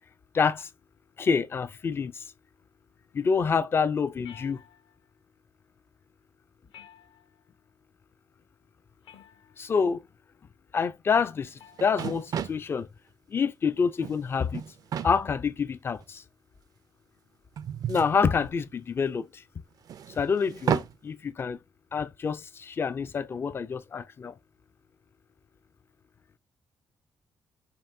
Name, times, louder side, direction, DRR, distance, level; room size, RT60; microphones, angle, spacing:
voice 1, 0.3-0.7 1.2-2.2 3.1-4.6 9.6-10.0 10.7-12.9 13.3-14.6 15.0-16.2 17.9-19.4 20.2-21.6 21.9-24.3, left 5 dB, 30° left, 0.4 m, -27 dB
sound 1, 4.2-5.1 6.7-7.6 9.0-9.7 11.6-12.0, left 9 dB, 65° left, 0.8 m, -52 dB
sound 2, 11.5-11.6 11.8-12.7 13.8-14.2 14.5-15.1 16.0-16.1 17.6-18.8 19.9-20.9, right 8 dB, 45° right, 0.4 m, -32 dB
5.3 x 2.5 x 2.6 m
wide cardioid pair, 170°, 9 cm